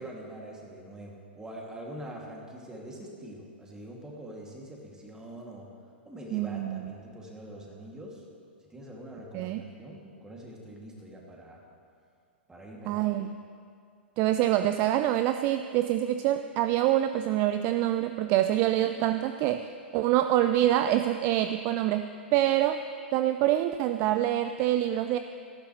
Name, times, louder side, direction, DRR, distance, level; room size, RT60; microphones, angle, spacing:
voice 1, 0.0-5.7 6.1-8.2 8.7-11.6 12.5-13.0, right 1 dB, 10° right, -2 dB, 2.5 m, -44 dB
voice 2, 6.3-6.9 9.3-9.6 12.9-13.3 14.2-19.7 19.9-22.8 23.1-25.2, right 13 dB, 35° right, 9 dB, 0.4 m, -26 dB
18.0 x 13.5 x 3.2 m, 2.3 s
figure-of-eight pair, 105°, 6 cm